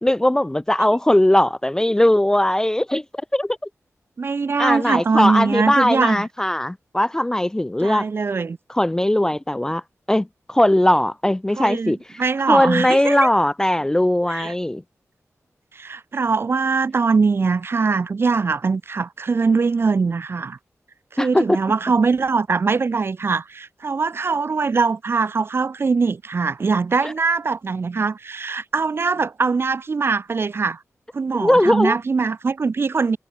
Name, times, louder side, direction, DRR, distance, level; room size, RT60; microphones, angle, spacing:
voice 1, 0.0-3.0 3.3-3.6 4.6-8.1 8.7-9.8 10.1-12.0 12.5-14.8 21.2-21.6 31.3-32.0, left 1 dB, 10° left, 0.4 m, -19 dB
voice 2, 4.2-6.2 7.8-8.6 11.6-13.3 14.3-14.5 15.7-20.6 21.1-30.8 31.1-33.2, right 4 dB, 45° right, 0.6 m, -22 dB
wide cardioid pair, 120°, 5 cm